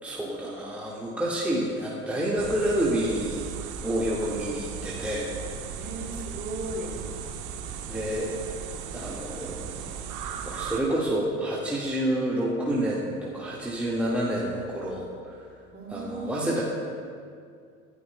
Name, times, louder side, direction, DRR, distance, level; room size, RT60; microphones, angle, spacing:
voice 1, 0.0-3.5 3.8-5.3 7.9-8.3 8.9-9.7 10.4-15.4 15.9-16.6, right 1 dB, 5° right, -6 dB, 1.8 m, -28 dB
sound 1, 2.4-10.8, right 7 dB, 45° right, 1.2 m, -37 dB
voice 2, 5.7-7.0 15.7-16.6, right 2 dB, 25° right, -1 dB, 3.0 m, -36 dB
24.0 x 11.5 x 2.3 m, 2.3 s
figure-of-eight pair, 65°, 43 cm